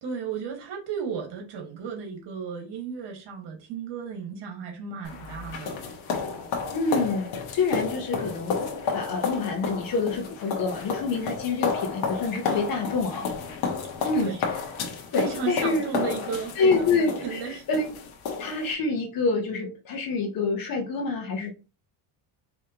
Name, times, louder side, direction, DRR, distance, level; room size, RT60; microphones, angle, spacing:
voice 1, 0.0-6.0 13.8-14.4 15.1-16.9 17.2-17.6, right 6 dB, 60° right, 1.8 m, -34 dB
sound 1, 5.0-18.7, left 5 dB, 80° left, 1.3 m, -31 dB
voice 2, 6.7-13.3 14.0-14.3 15.1-15.8 16.6-17.4 17.7-17.8 18.4-21.5, left 4 dB, 45° left, 1.1 m, -27 dB
4.9 x 3.2 x 2.9 m
cardioid pair, 165°, 48 cm